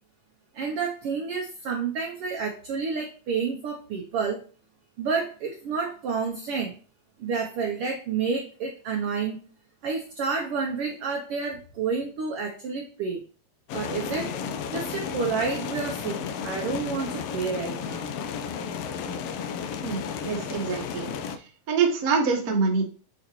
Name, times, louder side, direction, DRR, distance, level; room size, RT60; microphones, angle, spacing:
voice 1, 0.5-4.4 5.0-6.7 7.2-9.4 9.8-13.2 13.7-14.3 14.7-18.1 19.1-19.3, right 5 dB, 75° right, 2 dB, 1.3 m, -30 dB
sound 1, 13.7-21.4, left 7 dB, 80° left, 1.4 m, -33 dB
voice 2, 19.8-21.1 21.7-22.8, right 5 dB, 50° right, 1 dB, 1.0 m, -25 dB
7.9 x 4.0 x 3.0 m, 0.39 s
omnidirectional pair, 3.4 m